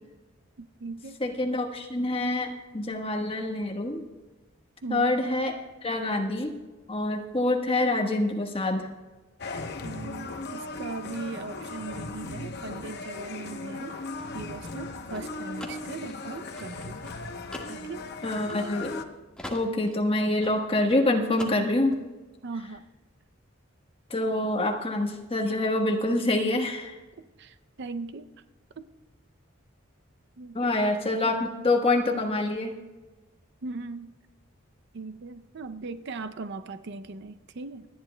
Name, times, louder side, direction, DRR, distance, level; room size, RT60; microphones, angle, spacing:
voice 1, 0.6-1.2 4.8-5.1 9.8-14.0 14.3-17.0 17.7-18.1 22.4-22.8 27.4-28.3 28.8-28.9 30.4-30.7 33.6-34.1 34.9-37.9, right 3 dB, 60° right, 10 dB, 0.5 m, -39 dB
voice 2, 1.2-4.0 4.9-5.5 5.8-6.5 6.9-8.9 18.2-19.0 19.5-22.0 24.1-27.0 30.5-32.8, left 2 dB, 30° left, 2 dB, 1.2 m, -26 dB
sound 1, 9.4-19.0, left 3 dB, 55° left, 0.8 m, -37 dB
sound 2, 13.8-19.1 19.4-21.0 21.3-22.0, left 1 dB, 5° left, 1.5 m, -44 dB
27.0 x 10.0 x 2.2 m, 1.2 s
head